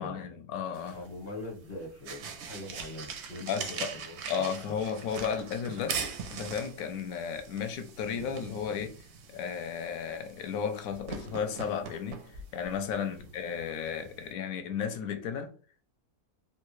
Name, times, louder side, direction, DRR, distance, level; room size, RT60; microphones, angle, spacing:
voice 1, 0.0-1.0 3.4-3.9 4.3-6.0 6.3-9.0 9.3-15.5, left 7 dB, 70° left, 0.9 m, -34 dB
sound 1, 0.7-14.3, right 6 dB, 65° right, 0.7 m, -42 dB
voice 2, 0.9-5.0 13.1-13.3, left 2 dB, 45° left, 1.0 m, -43 dB
3.0 x 2.3 x 3.0 m
omnidirectional pair, 1.6 m